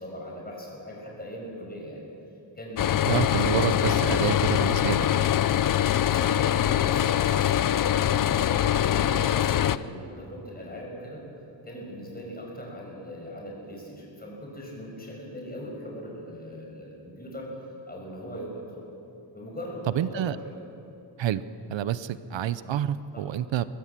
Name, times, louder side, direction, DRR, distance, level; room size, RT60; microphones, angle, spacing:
voice 1, 0.0-2.0 2.5-4.4 6.0-11.2 11.6-18.8 19.3-20.6 23.1-23.3, equal, 20° left, -2 dB, 6.6 m, -40 dB
sound 1, 2.8-9.8, left 11 dB, 50° left, 0.5 m, -23 dB
voice 2, 3.1-5.3 19.9-20.4 21.2-21.4 21.7-23.6, right 10 dB, 85° right, 15 dB, 0.7 m, -28 dB
24.0 x 16.0 x 7.5 m, 2.8 s
wide cardioid pair, 130°, 43 cm